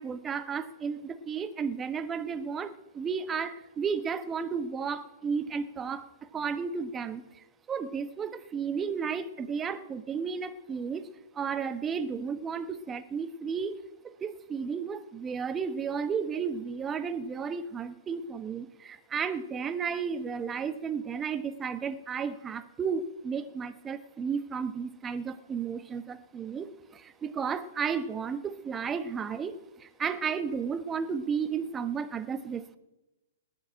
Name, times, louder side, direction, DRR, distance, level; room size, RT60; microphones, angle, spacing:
voice 1, 0.0-6.1 6.3-7.2 7.7-11.1 11.4-13.7 14.0-32.8, right 6 dB, 20° right, 12 dB, 1.1 m, -33 dB
19.0 x 7.3 x 8.8 m, 1.0 s
hypercardioid pair, 125°, 0 cm